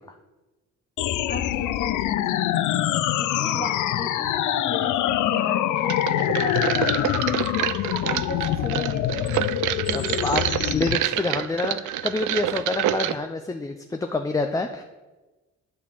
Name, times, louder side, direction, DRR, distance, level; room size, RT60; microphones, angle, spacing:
sound 1, 1.0-11.0, left 12 dB, 80° left, 0.5 m, -25 dB
voice 1, 1.3-2.6 3.2-7.2 8.0-9.6 9.9-10.6, left 2 dB, 30° left, 1 dB, 2.0 m, -35 dB
sound 2, 5.9-13.1, right 13 dB, 80° right, 0.5 m, -27 dB
voice 2, 9.9-10.4 10.7-14.8, left 3 dB, 10° left, 5 dB, 0.5 m, -27 dB
10.0 x 4.2 x 7.1 m, 1.2 s
cardioid pair, 90°, 30 cm